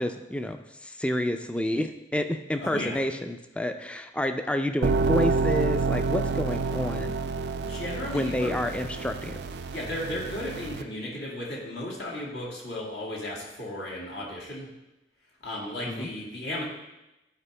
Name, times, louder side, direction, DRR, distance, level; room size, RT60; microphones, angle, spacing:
voice 1, 0.0-7.2 8.1-9.4 15.9-16.1, left 1 dB, 5° left, 7 dB, 0.3 m, -29 dB
voice 2, 2.6-3.0 7.6-8.6 9.7-14.7 15.4-16.6, left 1 dB, 70° left, -4 dB, 2.1 m, -35 dB
sound 1, 4.8-10.8, right 4 dB, 70° right, 0.4 m, -28 dB
11.0 x 4.6 x 3.3 m, 0.96 s
head